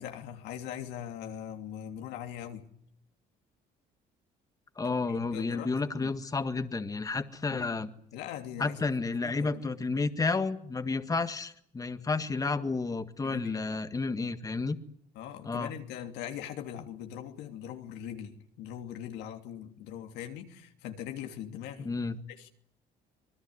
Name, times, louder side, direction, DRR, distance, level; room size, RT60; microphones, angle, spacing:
voice 1, 0.0-2.6 4.8-6.1 7.5-7.8 8.1-8.8 9.2-9.9 10.9-11.0 13.2-13.6 15.1-21.9 22.3-22.5, left 10 dB, 90° left, 3.0 m, -41 dB
voice 2, 4.8-7.9 8.6-14.8 15.4-15.7 21.8-22.2, left 4 dB, 20° left, 1.7 m, -31 dB
26.0 x 20.5 x 9.8 m
cardioid pair, 110°, 17 cm